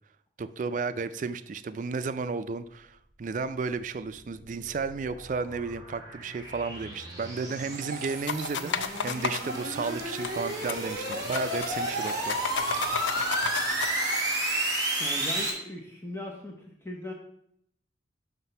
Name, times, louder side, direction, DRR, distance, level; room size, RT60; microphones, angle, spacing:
voice 1, 0.4-13.3, right 4 dB, 45° right, 13 dB, 0.3 m, -33 dB
sound 1, 4.2-15.5, right 1 dB, 20° right, 2.3 m, -32 dB
sound 2, 7.6-14.2, right 3 dB, 75° right, 0.9 m, -44 dB
sound 3, 8.3-9.4 10.2-10.3 10.6-10.8 11.1-11.7 12.0-13.9, left 6 dB, 85° left, 0.5 m, -32 dB
voice 2, 15.0-16.5 16.8-17.1, left 1 dB, 15° left, -1 dB, 0.8 m, -39 dB
5.9 x 5.8 x 5.4 m, 0.72 s
head